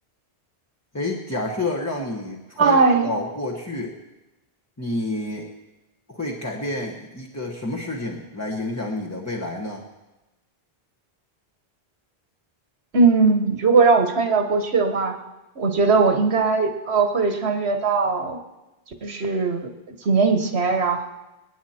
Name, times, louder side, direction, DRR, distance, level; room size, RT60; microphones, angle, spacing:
voice 1, 0.9-2.8 3.0-4.0 4.8-5.5 6.1-9.8, left 2 dB, 15° left, -1 dB, 1.2 m, -29 dB
voice 2, 2.6-3.1 12.9-15.2 15.6-18.4 19.0-21.1, right 4 dB, 85° right, 7 dB, 1.6 m, -19 dB
27.0 x 9.3 x 4.3 m, 1.0 s
omnidirectional pair, 1.1 m